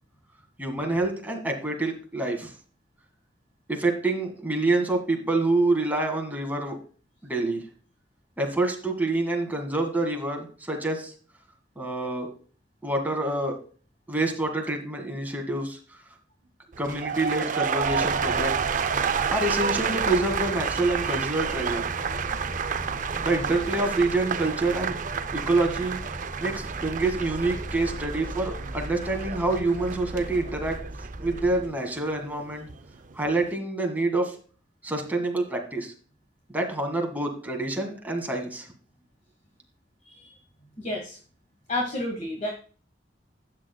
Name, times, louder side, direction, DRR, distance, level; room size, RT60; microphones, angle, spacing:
voice 1, 0.6-2.5 3.7-6.8 7.2-7.6 8.4-11.1 11.8-12.3 12.8-13.6 14.1-16.0 16.8-18.5 19.3-21.9 23.2-25.0 25.3-26.0 26.4-30.8 31.2-32.7 33.2-34.3 34.8-35.9 36.5-38.7, right 2 dB, 10° right, 2 dB, 1.9 m, -27 dB
sound 1, 16.7-32.8 33.1-33.5, right 6 dB, 45° right, 0.5 m, -30 dB
sound 2, 17.8-31.6, right 1 dB, 15° left, 1.7 m, -38 dB
voice 2, 40.8-41.2 41.7-42.5, left 1 dB, 40° left, 1 dB, 1.6 m, -30 dB
12.0 x 8.7 x 2.3 m, 0.40 s
head